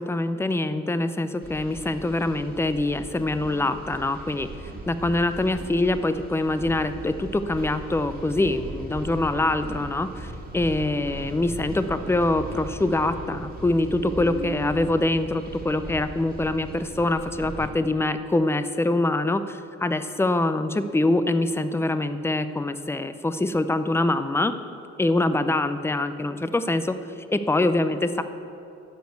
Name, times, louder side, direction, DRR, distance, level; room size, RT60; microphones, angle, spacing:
voice 1, 0.0-4.5 4.9-24.5 25.0-26.9 27.3-28.2, left 2 dB, 10° left, 11 dB, 0.5 m, -24 dB
sound 1, 1.4-17.7, right 2 dB, 30° right, 1.8 m, -38 dB
12.5 x 5.2 x 7.8 m, 2.7 s
cardioid pair, 90°, 30 cm